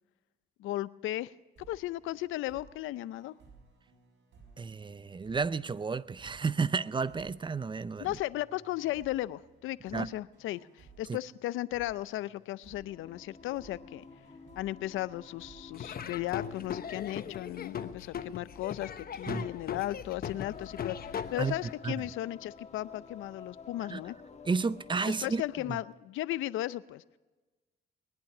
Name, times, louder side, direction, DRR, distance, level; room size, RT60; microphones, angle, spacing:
voice 1, 0.6-3.3 8.0-14.0 14.6-24.2 25.2-27.0, left 15 dB, 85° left, 0.6 m, -36 dB
sound 1, 1.6-17.0, right 4 dB, 65° right, 6.5 m, -59 dB
voice 2, 4.6-8.1 9.9-10.1 11.1-11.2 19.3-19.5 21.4-21.6 21.8-21.9 23.9-24.0 24.5-25.4 25.7-25.8, right 4 dB, 25° right, 0.5 m, -32 dB
Singing, 12.7-25.9, left 5 dB, 35° left, 1.5 m, -52 dB
Laughter / Drum, 15.7-21.7, left 8 dB, 50° left, 1.0 m, -39 dB
21.0 x 11.5 x 6.0 m
cardioid pair, 90°, 20 cm